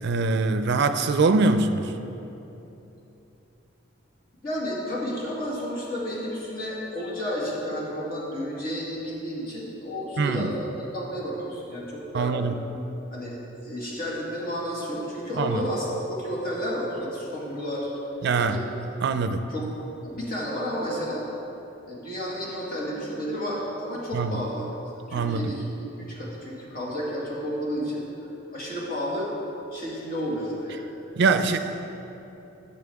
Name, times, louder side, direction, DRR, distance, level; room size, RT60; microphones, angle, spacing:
voice 1, 0.0-1.9 10.2-10.5 12.1-12.6 15.4-15.6 18.2-18.6 19.0-19.5 24.1-24.4 25.1-25.5 31.2-31.6, right 4 dB, 60° right, 9 dB, 0.4 m, -23 dB
voice 2, 4.4-12.3 13.1-13.4 13.6-17.9 18.5-18.7 19.5-19.7 20.0-21.3 21.9-28.0 28.5-29.3 29.7-30.9 31.5-31.6, equal, 50° left, -5 dB, 2.1 m, -31 dB
12.0 x 7.0 x 3.5 m, 3.0 s
head